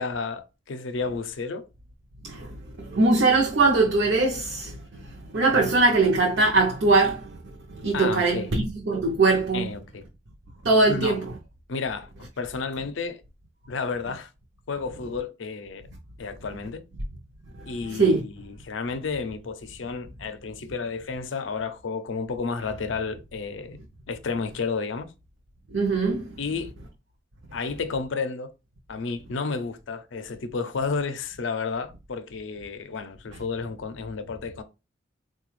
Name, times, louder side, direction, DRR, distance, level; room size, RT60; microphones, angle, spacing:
voice 1, 0.0-1.7 7.9-8.5 9.5-10.0 10.9-11.2 11.7-13.2 13.7-14.3 14.7-15.9 16.2-16.8 17.6-23.8 24.1-25.1 26.4-26.7 27.5-28.5 28.9-34.6, left 4 dB, 80° left, 0.5 m, -31 dB
voice 2, 2.2-7.4 7.7-9.7 10.6-11.3 17.9-18.2 25.7-26.4, right 3 dB, 65° right, 0.6 m, -22 dB
4.0 x 2.2 x 3.0 m
head